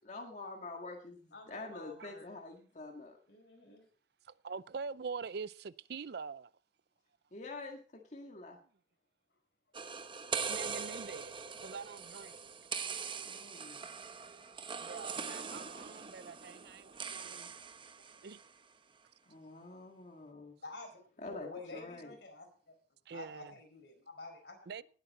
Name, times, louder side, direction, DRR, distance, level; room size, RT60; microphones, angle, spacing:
voice 1, 0.0-1.2 1.5-3.2 7.3-8.6 13.2-13.8 19.3-20.5 21.2-22.2, left 3 dB, 45° left, 1.8 m, -46 dB
voice 2, 1.3-2.3 3.3-3.9 20.6-21.0 21.3-22.7 23.1-24.6, left 3 dB, 65° left, 4.7 m, -49 dB
voice 3, 4.2-6.5 10.4-12.5 14.8-17.5 18.2-18.4 23.1-23.5 24.7-24.8, right 5 dB, 60° right, 0.5 m, -44 dB
sound 1, 9.7-18.5, right 5 dB, 30° right, 0.8 m, -42 dB
19.0 x 8.2 x 4.1 m
head